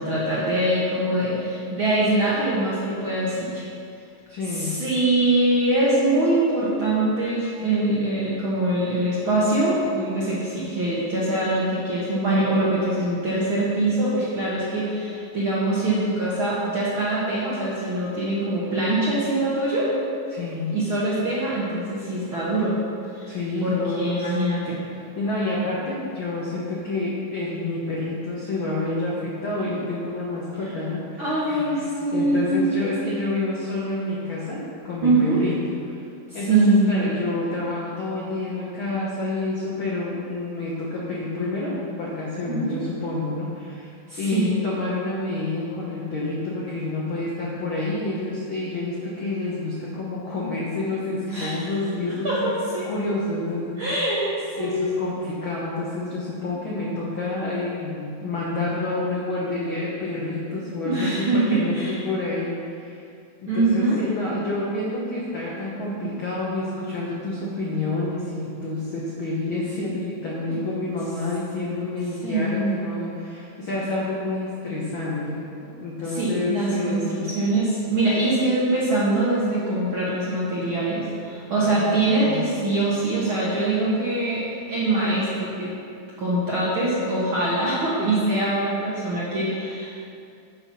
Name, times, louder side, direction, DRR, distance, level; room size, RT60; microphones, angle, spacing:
voice 1, 0.0-3.6 4.5-19.9 20.7-22.7 23.1-23.4 23.6-24.8 31.2-32.9 35.0-35.4 36.5-37.0 42.5-42.8 44.1-44.5 51.3-51.7 52.2-52.9 53.8-54.2 54.6-55.2 60.7-62.0 63.5-64.0 70.4-70.6 72.2-72.8 76.1-85.7 86.2-90.1, right 2 dB, 55° right, -8 dB, 1.5 m, -23 dB
voice 2, 4.3-4.8 20.3-20.7 23.3-24.3 25.2-35.5 35.9-36.0 36.3-36.6 36.9-43.9 44.2-52.5 52.8-53.8 54.6-63.0 63.4-77.2 81.5-82.4, left 2 dB, 75° left, -6 dB, 1.1 m, -28 dB
9.0 x 5.8 x 5.5 m, 2.4 s
omnidirectional pair, 4.1 m